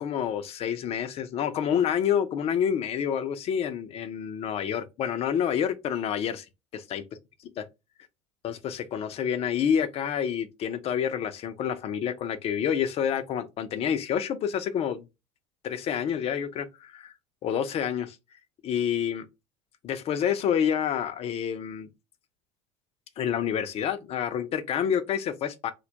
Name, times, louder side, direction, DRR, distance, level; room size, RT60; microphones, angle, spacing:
voice 1, 0.0-6.5 6.7-7.0 8.4-15.0 15.6-17.1 17.4-18.2 18.6-19.3 19.8-21.9 23.2-25.7, left 8 dB, 45° left, 0.4 m, -28 dB
2.2 x 2.1 x 2.6 m
hypercardioid pair, 75°, 14 cm